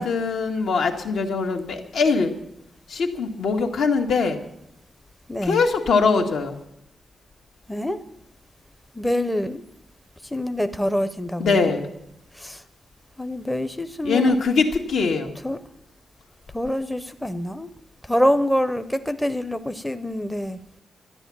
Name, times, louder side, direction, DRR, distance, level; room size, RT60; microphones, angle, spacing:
voice 1, 0.0-2.3 2.9-4.4 5.4-6.6 11.4-11.9 14.0-15.4, left 4 dB, 80° left, 3 dB, 2.0 m, -22 dB
voice 2, 5.3-5.6 7.7-8.0 8.9-9.6 10.3-11.7 12.3-12.6 13.2-14.5 15.4-15.6 16.5-17.7 18.0-20.6, left 1 dB, 5° left, 10 dB, 0.6 m, -25 dB
12.5 x 11.0 x 8.6 m, 0.77 s
wide cardioid pair, 160°, 0 cm